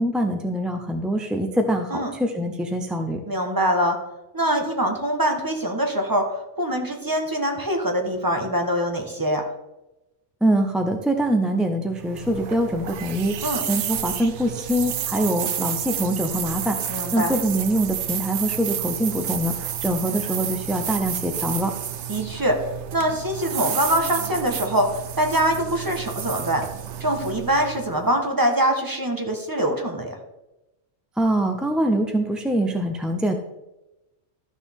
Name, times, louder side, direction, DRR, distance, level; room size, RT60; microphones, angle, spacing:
voice 1, 0.0-3.2 10.4-13.3 13.7-21.7 31.2-33.3, right 1 dB, ahead, 4 dB, 0.4 m, -24 dB
voice 2, 3.3-4.0 4.3-9.5 13.4-13.6 16.9-17.3 22.1-22.6 22.9-26.7 27.0-30.2, equal, 20° right, 3 dB, 1.2 m, -24 dB
Coho - Milk Steamer, 11.9-28.1, right 10 dB, 75° right, 1.0 m, -31 dB
13.0 x 6.4 x 3.6 m, 0.98 s
omnidirectional pair, 1.2 m